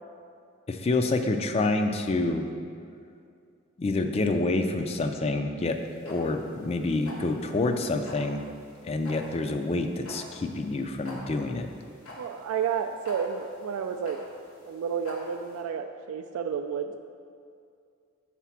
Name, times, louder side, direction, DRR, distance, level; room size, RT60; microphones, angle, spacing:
voice 1, 0.7-2.5 3.8-8.4 8.8-11.7, left 2 dB, 30° left, 6 dB, 0.3 m, -27 dB
sound 1, 5.6-15.6, left 1 dB, 85° left, 1.3 m, -46 dB
voice 2, 12.2-14.2 14.7-17.0, right 7 dB, 85° right, 8 dB, 0.3 m, -31 dB
5.8 x 4.1 x 5.7 m, 2.3 s
head